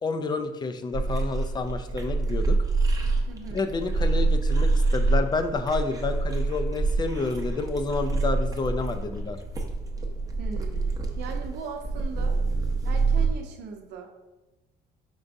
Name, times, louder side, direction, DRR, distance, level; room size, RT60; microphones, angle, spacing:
voice 1, 0.0-2.6 3.5-9.4, left 3 dB, 25° left, 8 dB, 0.4 m, -29 dB
sound 1, 0.9-13.3, right 3 dB, 20° right, 0.7 m, -26 dB
voice 2, 3.3-3.6 10.4-12.4 12.8-14.1, right 5 dB, 80° right, 3 dB, 0.7 m, -39 dB
5.2 x 3.5 x 2.6 m, 1.1 s
cardioid pair, 110°, 17 cm